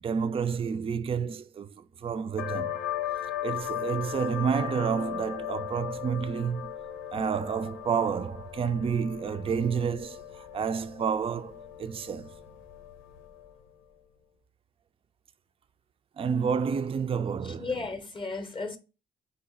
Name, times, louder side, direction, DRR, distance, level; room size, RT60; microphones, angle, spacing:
voice 1, 0.0-2.8 3.4-6.7 7.1-12.3 16.2-17.7, right 6 dB, 30° right, 0.4 m, -30 dB
sound 1, 2.4-13.7, left 11 dB, 90° left, 0.6 m, -37 dB
voice 2, 17.4-18.8, left 3 dB, 25° left, 0.6 m, -34 dB
5.1 x 2.3 x 3.9 m
cardioid pair, 90°, 20 cm